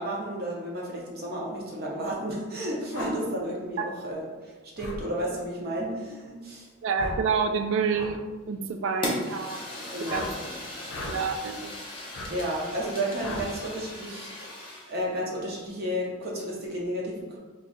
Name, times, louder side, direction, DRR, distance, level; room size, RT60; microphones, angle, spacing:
voice 1, 0.0-6.7 9.9-10.4 12.3-14.6 14.9-17.4, right 1 dB, 50° right, -3 dB, 0.7 m, -32 dB
sound 1, 2.9-3.1 4.8-5.0 6.9-7.2 7.9-8.1 10.0-10.3 10.9-11.2 12.1-12.3 13.2-13.5, left 2 dB, 75° left, 0.6 m, -35 dB
voice 2, 6.8-8.2 8.5-9.6 10.1-10.3 11.1-11.7, right 5 dB, 65° right, 7 dB, 0.3 m, -28 dB
Fire, 9.0-14.9, left 1 dB, 25° left, 0.8 m, -37 dB
2.9 x 2.3 x 3.7 m, 1.3 s
head